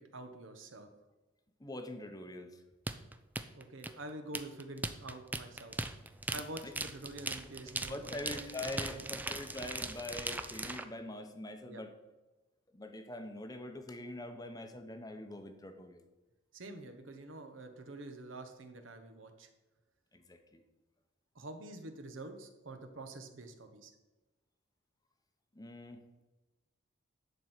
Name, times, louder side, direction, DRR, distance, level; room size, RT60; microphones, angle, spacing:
voice 1, 0.1-0.9 3.5-5.8 6.3-8.2 8.7-9.1 11.7-11.8 16.5-19.5 21.3-23.9, right 2 dB, 70° right, 6 dB, 1.3 m, -47 dB
voice 2, 1.6-2.6 6.6-6.7 7.9-11.9 12.7-16.0 20.1-20.6 25.5-26.0, left 1 dB, 20° left, 6 dB, 0.9 m, -44 dB
sound 1, 2.9-10.8, right 2 dB, 10° right, 0.4 m, -39 dB
11.5 x 4.5 x 8.1 m, 1.1 s
head